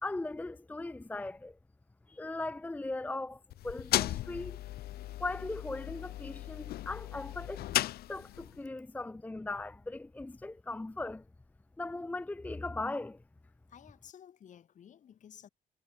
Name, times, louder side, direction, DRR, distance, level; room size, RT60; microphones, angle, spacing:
voice 1, 0.0-1.6 2.1-4.6 5.2-7.7 8.1-11.2 11.8-13.2, left 2 dB, 10° left, 0.6 m, -39 dB
sound 1, 3.5-8.6, left 15 dB, 65° left, 0.8 m, -36 dB
voice 2, 13.7-15.5, left 9 dB, 45° left, 2.3 m, -54 dB
cardioid pair, 110°, 17 cm